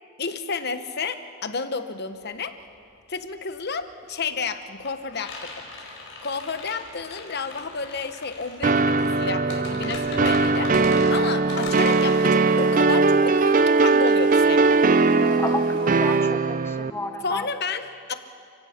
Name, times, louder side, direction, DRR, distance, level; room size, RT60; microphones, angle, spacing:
voice 1, 0.2-2.5 3.1-5.5 6.2-10.7 11.1-14.8 17.2-18.1, left 4 dB, 50° left, 9 dB, 1.1 m, -31 dB
sound 1, 2.1-2.2 2.5-15.2, left 3 dB, 70° left, 4.4 m, -40 dB
sound 2, 8.6-16.9, right 3 dB, 40° right, 0.5 m, -20 dB
Toilet flush, 11.3-16.2, right 1 dB, 25° right, 4.2 m, -43 dB
voice 2, 15.1-17.5, left 2 dB, 10° left, 6 dB, 1.0 m, -32 dB
30.0 x 16.5 x 5.9 m, 2.4 s
head